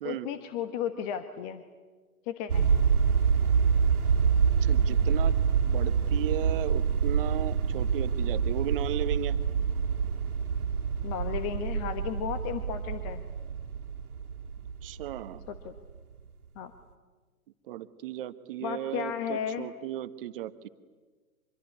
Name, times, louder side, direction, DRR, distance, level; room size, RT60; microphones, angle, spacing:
voice 1, 0.0-1.6 2.3-2.7 11.0-13.2 15.5-15.7 16.5-16.7 18.6-19.7, left 8 dB, 25° left, 9 dB, 1.3 m, -34 dB
sound 1, 2.5-15.8, right 6 dB, 75° right, 2.2 m, -26 dB
voice 2, 4.6-5.4 5.6-9.4 14.8-15.4 17.7-20.7, right 12 dB, 40° right, 12 dB, 1.3 m, -36 dB
25.5 x 22.5 x 9.8 m, 1.4 s
hypercardioid pair, 140°, 44 cm